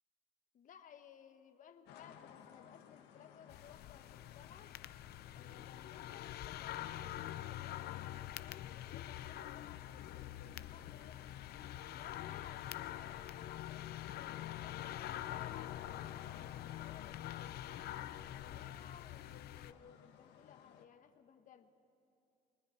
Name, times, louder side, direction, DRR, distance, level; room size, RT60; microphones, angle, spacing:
voice 1, 0.5-4.7 5.3-11.3 11.9-17.9 18.4-21.7, left 8 dB, 50° left, 8 dB, 1.2 m, -59 dB
sound 1, 1.9-20.8, left 8 dB, 85° left, 1.4 m, -59 dB
sound 2, 3.5-19.7, left 13 dB, 70° left, 0.6 m, -45 dB
29.5 x 21.0 x 4.4 m, 2.8 s
cardioid pair, 110°, 17 cm